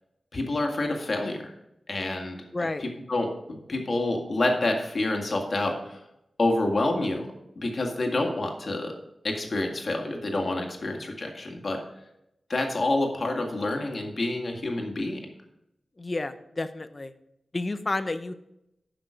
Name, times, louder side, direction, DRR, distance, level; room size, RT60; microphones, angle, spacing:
voice 1, 0.3-1.5 1.9-2.4 2.8-6.0 6.4-7.3 7.6-8.9 9.2-11.8 12.5-15.2, left 2 dB, 50° left, 2 dB, 1.9 m, -28 dB
voice 2, 2.5-2.8 16.0-17.1 17.5-18.3, left 2 dB, 35° left, 11 dB, 0.7 m, -30 dB
11.0 x 6.0 x 5.1 m, 0.83 s
wide cardioid pair, 105°, 0 cm